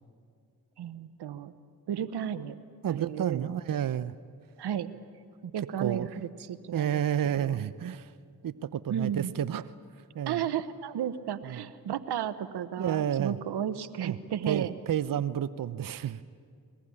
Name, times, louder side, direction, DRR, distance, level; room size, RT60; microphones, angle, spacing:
voice 1, 0.8-1.5 1.9-2.6 2.9-3.5 4.6-4.9 5.5-7.6 8.9-9.3 10.3-14.7, right 9 dB, 85° right, 14 dB, 1.0 m, -33 dB
voice 2, 2.8-4.1 5.4-5.5 5.8-6.1 6.7-8.1 8.4-9.7 10.1-10.4 11.4-11.6 12.8-13.4 14.0-14.2 14.5-16.2, right 9 dB, 55° right, 15 dB, 0.7 m, -30 dB
21.5 x 21.0 x 9.8 m, 2.3 s
supercardioid pair, 40°, 39 cm